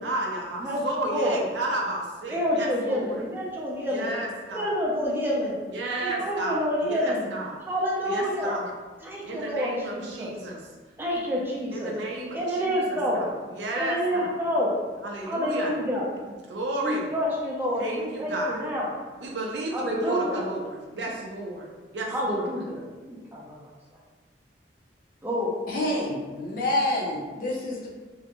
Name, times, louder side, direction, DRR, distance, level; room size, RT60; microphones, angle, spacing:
voice 1, 0.0-3.2 3.9-4.7 5.7-7.6 8.0-8.7 9.2-10.6 11.7-14.3 15.0-15.8 16.5-17.1 17.8-18.6 19.2-21.7 21.9-22.7, right 2 dB, 75° right, -1 dB, 0.4 m, -33 dB
voice 2, 0.6-1.4 2.3-4.1 4.5-5.6 6.0-7.3 7.7-8.6 9.0-10.3 11.0-11.9 12.3-13.2 13.7-14.7 15.3-16.1 16.8-18.9 19.7-20.4 22.1-22.8 23.1-23.6 25.2-25.5, equal, 10° right, -5 dB, 0.5 m, -28 dB
voice 3, 25.7-27.9, left 1 dB, 50° left, -3 dB, 0.5 m, -27 dB
2.5 x 2.1 x 2.9 m, 1.4 s
head